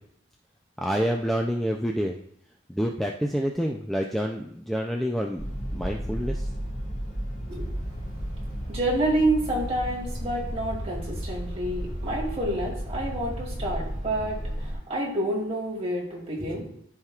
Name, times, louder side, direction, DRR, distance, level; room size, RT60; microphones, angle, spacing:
voice 1, 0.8-2.2 2.7-5.4 5.7-6.5, equal, ahead, 1 dB, 0.4 m, -27 dB
sound 1, 5.4-14.8, equal, 65° left, 2.0 m, -33 dB
voice 2, 8.7-14.4 14.9-16.7, right 1 dB, 30° right, -5 dB, 2.5 m, -28 dB
13.0 x 4.4 x 2.4 m, 0.69 s
head